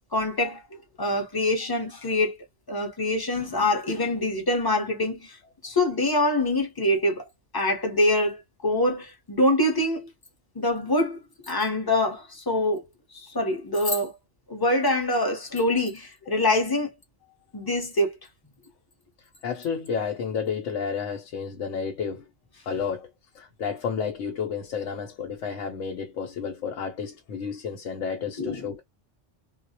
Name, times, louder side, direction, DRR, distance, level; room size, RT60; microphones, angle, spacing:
voice 1, 0.1-0.6 1.0-2.4 2.7-5.4 5.6-7.3 7.5-10.1 10.6-11.2 11.5-12.8 13.1-14.1 14.5-16.9 17.5-18.2 28.4-28.6, left 1 dB, 20° left, 0.7 m, -25 dB
voice 2, 19.4-22.3 22.7-23.1 23.3-28.8, left 6 dB, 85° left, 1.0 m, -31 dB
2.3 x 2.0 x 2.7 m
omnidirectional pair, 1.2 m